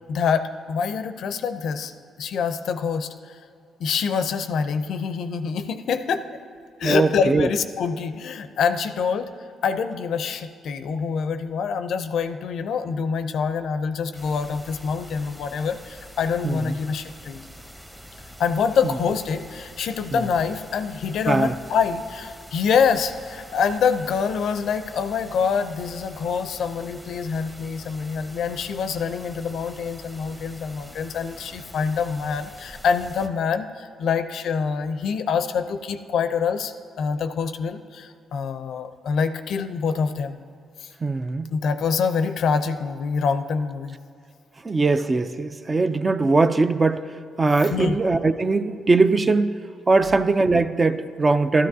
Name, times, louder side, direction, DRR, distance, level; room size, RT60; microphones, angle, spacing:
voice 1, 0.1-1.9 2.2-3.4 3.8-6.3 6.8-9.3 9.6-17.4 18.4-40.4 40.8-40.9 41.5-44.0 47.7-48.0, left 6 dB, 70° left, 10 dB, 0.5 m, -25 dB
voice 2, 6.8-7.5 16.4-16.7 20.1-20.2 21.3-21.5 41.0-41.5 44.6-47.0 47.4-49.6 49.9-51.7, right 3 dB, 25° right, 11 dB, 0.4 m, -20 dB
sound 1, 14.1-33.3, equal, 10° right, 0.9 m, -45 dB
13.0 x 12.5 x 2.7 m, 2.4 s
cardioid pair, 90°, 0 cm